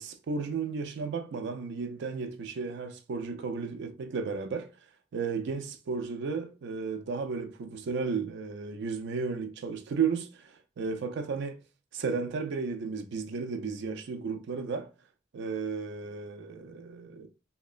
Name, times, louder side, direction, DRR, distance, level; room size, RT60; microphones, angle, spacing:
voice 1, 0.0-4.7 5.1-11.6 11.9-14.9 15.3-17.3, right 5 dB, 60° right, 0.4 m, -34 dB
2.8 x 2.1 x 2.4 m
head